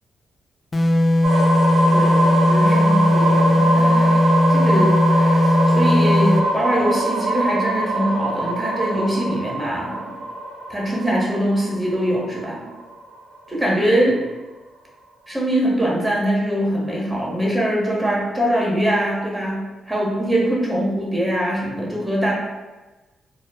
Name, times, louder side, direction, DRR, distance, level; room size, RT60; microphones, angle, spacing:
sound 1, 0.7-6.5, left 1 dB, 35° left, 0.3 m, -17 dB
sound 2, 1.2-13.0, right 1 dB, 85° right, 0.6 m, -23 dB
voice 1, 1.9-10.2 10.7-12.7 13.5-14.1 15.3-19.6 19.9-22.3, equal, 5° right, -4 dB, 0.9 m, -22 dB
2.1 x 2.1 x 3.3 m, 1.2 s
supercardioid pair, 60°, 0 cm